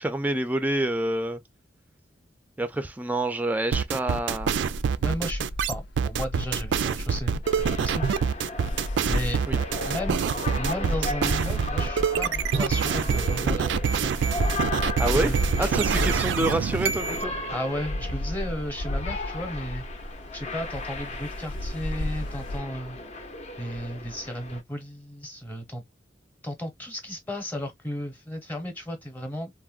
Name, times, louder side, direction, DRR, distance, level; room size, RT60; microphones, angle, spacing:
voice 1, 0.0-1.4 2.6-4.5 9.5-9.6 15.0-15.3 15.6-17.3, right 1 dB, 10° right, 0.4 m, -27 dB
sound 1, 3.7-17.2, right 7 dB, 80° right, 0.3 m, -26 dB
sound 2, 4.3-22.6, left 1 dB, 80° left, 0.5 m, -33 dB
voice 2, 5.0-8.1 9.1-9.4 9.9-10.3 10.6-14.5 15.1-15.9 17.5-19.8 20.3-23.0 23.6-25.8 26.4-29.5, equal, 10° left, 0.8 m, -34 dB
sound 3, 7.4-24.6, left 2 dB, 40° left, 0.6 m, -37 dB
3.6 x 2.1 x 2.3 m
head